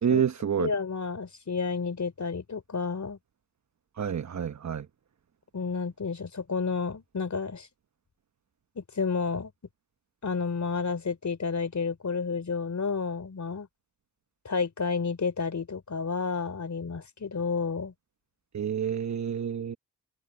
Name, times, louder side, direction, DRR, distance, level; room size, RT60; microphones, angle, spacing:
voice 1, 0.0-0.7 4.0-4.8 18.5-19.8, right 8 dB, 45° right, 1.1 m, -28 dB
voice 2, 0.6-3.2 5.5-7.7 8.8-9.5 10.2-13.7 14.5-17.9, left 5 dB, 45° left, 3.5 m, -31 dB
supercardioid pair, 50°, 39 cm